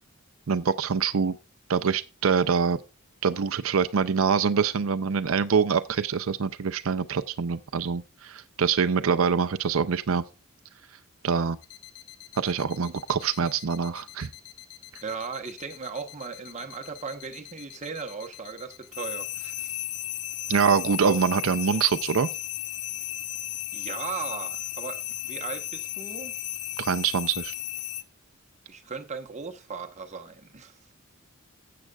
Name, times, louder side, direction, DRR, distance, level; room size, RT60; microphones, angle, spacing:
voice 1, 0.5-1.4 1.7-2.8 3.2-10.2 11.2-11.6 12.4-14.3 20.5-22.3 26.8-27.5, right 6 dB, 65° right, 0.5 m, -25 dB
sound 1, 11.6-28.0, left 13 dB, 80° left, 0.7 m, -36 dB
voice 2, 15.0-19.9 23.7-26.4 28.7-30.8, right 5 dB, 30° right, 1.0 m, -37 dB
15.5 x 7.7 x 2.3 m
head